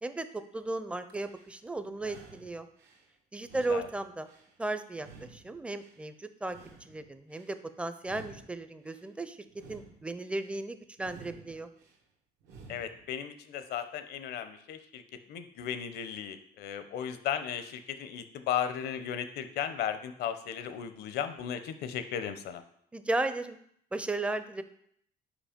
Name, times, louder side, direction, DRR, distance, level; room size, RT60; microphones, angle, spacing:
voice 1, 0.0-2.7 3.3-4.3 4.6-11.7 22.9-23.6 23.9-24.6, right 2 dB, 5° right, 10 dB, 0.4 m, -35 dB
sound 1, 1.1-1.6 1.9-3.1 3.4-4.6 4.9-6.0 6.4-7.5 8.0-9.1 9.5-10.6 11.0-12.0 12.4-13.1, right 4 dB, 80° right, 1.2 m, -53 dB
voice 2, 12.7-15.0 15.3-22.6, left 9 dB, 75° left, 10 dB, 0.7 m, -35 dB
5.2 x 5.0 x 5.1 m, 0.68 s
cardioid pair, 110°, 17 cm